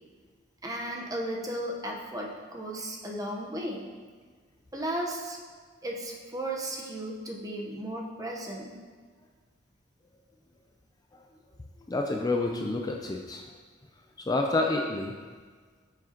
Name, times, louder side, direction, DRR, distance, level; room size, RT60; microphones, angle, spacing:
voice 1, 0.6-3.9 4.7-5.4 5.8-8.7, right 1 dB, 20° right, -1 dB, 0.9 m, -35 dB
voice 2, 11.9-13.4 14.3-15.2, left 2 dB, 20° left, 2 dB, 0.4 m, -28 dB
9.0 x 6.1 x 2.9 m, 1.5 s
head